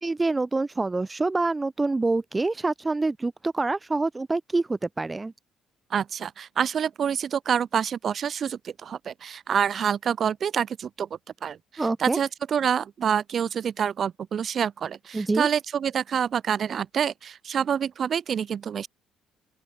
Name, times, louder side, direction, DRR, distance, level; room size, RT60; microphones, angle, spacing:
voice 1, 0.0-5.3 11.8-12.2 15.1-15.5, right 3 dB, 20° right, 0.6 m, -26 dB
voice 2, 5.9-11.1 11.4-11.6 12.0-18.9, right 8 dB, 55° right, 0.8 m, -27 dB
open air
supercardioid pair, 65°, 0 cm